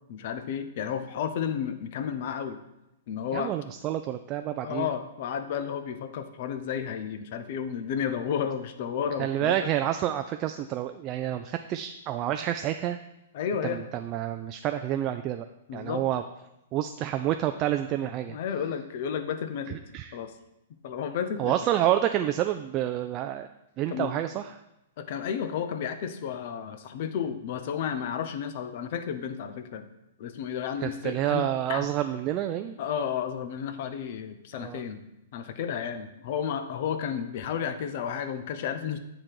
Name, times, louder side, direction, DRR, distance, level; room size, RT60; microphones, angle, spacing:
voice 1, 0.1-2.6 3.1-3.5 4.6-9.7 13.3-13.9 15.7-16.0 17.4-17.5 18.3-19.8 20.1-20.3 20.8-21.6 23.9-24.1 25.0-29.9 30.2-31.9 32.8-35.0 35.3-39.0, left 8 dB, 55° left, 10 dB, 0.6 m, -32 dB
voice 2, 3.3-4.9 9.2-13.0 13.6-15.4 15.7-16.2 16.7-18.4 19.9-20.1 21.4-23.5 23.8-24.4 30.8-32.8 34.5-34.8, right 12 dB, 35° right, 7 dB, 0.3 m, -28 dB
8.7 x 2.9 x 4.9 m, 0.90 s
hypercardioid pair, 115°, 0 cm